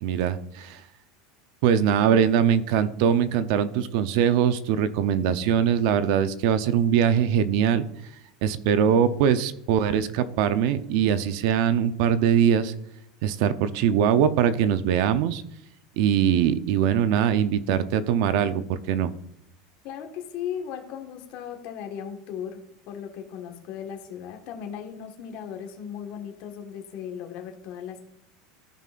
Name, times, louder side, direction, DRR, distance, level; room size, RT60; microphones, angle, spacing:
voice 1, 0.0-0.8 1.6-7.9 8.4-12.7 13.2-15.4 16.0-19.1, right 8 dB, 65° right, 12 dB, 0.6 m, -22 dB
voice 2, 19.8-22.6 22.9-28.0, left 8 dB, 55° left, 3 dB, 1.5 m, -37 dB
14.5 x 5.5 x 2.5 m, 0.76 s
supercardioid pair, 135°, 3 cm